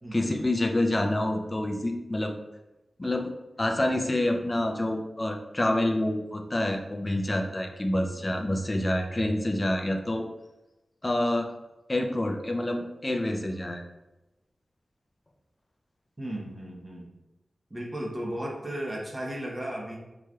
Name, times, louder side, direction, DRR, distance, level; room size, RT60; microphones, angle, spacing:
voice 1, 0.1-2.3 3.0-3.3 3.6-10.3 11.0-11.5 11.9-13.8, left 1 dB, 25° left, 3 dB, 0.4 m, -27 dB
voice 2, 16.2-17.1 17.7-19.9, right 1 dB, 25° right, -3 dB, 1.0 m, -35 dB
4.5 x 3.0 x 2.3 m, 1.0 s
wide cardioid pair, 105°, 0 cm